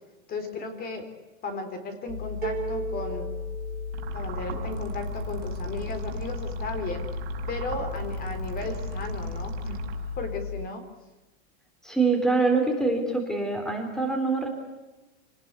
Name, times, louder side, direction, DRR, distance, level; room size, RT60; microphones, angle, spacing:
voice 1, 0.3-1.1 1.4-3.3 4.1-7.0 7.5-9.8 10.2-10.9, left 3 dB, 25° left, 9 dB, 3.9 m, -35 dB
sound 1, 2.1-10.7, left 6 dB, 85° left, 1.9 m, -35 dB
sound 2, 2.4-4.4, right 5 dB, 25° right, 5.7 m, -35 dB
sound 3, 3.9-10.4, right 10 dB, 65° right, 5.3 m, -39 dB
voice 2, 11.8-14.5, right 3 dB, ahead, 4 dB, 3.5 m, -24 dB
27.5 x 19.5 x 8.2 m, 1.1 s
supercardioid pair, 150°, 34 cm